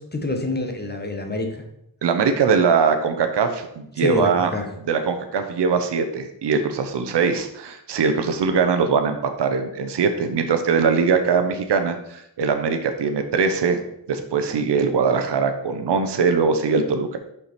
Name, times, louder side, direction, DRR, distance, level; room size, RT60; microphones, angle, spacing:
voice 1, 0.0-1.6 4.0-4.7, left 2 dB, 25° left, 4 dB, 1.0 m, -26 dB
voice 2, 2.0-4.5 4.9-13.8 14.1-17.2, right 5 dB, 80° right, 7 dB, 0.7 m, -21 dB
5.6 x 4.7 x 4.3 m, 0.76 s
wide cardioid pair, 85°, 41 cm